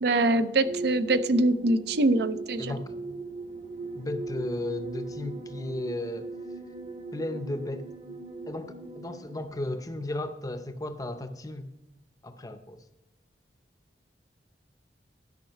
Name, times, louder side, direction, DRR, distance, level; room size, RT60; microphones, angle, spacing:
voice 1, 0.0-2.7, right 2 dB, 60° right, 0.5 m, -24 dB
sound 1, 0.6-9.5, right 3 dB, 40° right, 1.0 m, -39 dB
voice 2, 2.6-3.0 3.9-6.3 7.1-7.9 8.5-11.7 12.2-12.8, left 1 dB, 20° left, 0.6 m, -34 dB
12.0 x 5.5 x 5.5 m
head